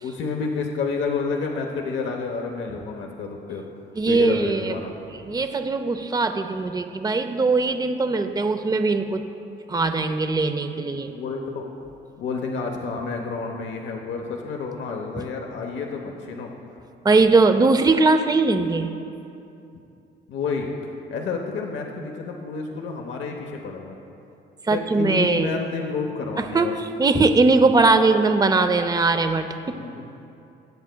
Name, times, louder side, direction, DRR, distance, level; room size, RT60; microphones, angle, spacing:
voice 1, 0.0-3.6 4.1-4.9 11.1-11.7 12.2-16.5 20.3-20.7 21.1-24.0 24.7-26.7 29.7-30.1, left 4 dB, 70° left, 2 dB, 0.9 m, -29 dB
voice 2, 4.0-4.7 5.1-9.3 9.7-11.1 17.0-18.9 24.7-25.6 26.5-29.8, right 3 dB, 20° right, 8 dB, 0.6 m, -20 dB
22.0 x 8.1 x 2.3 m, 2.7 s
cardioid pair, 90°, 20 cm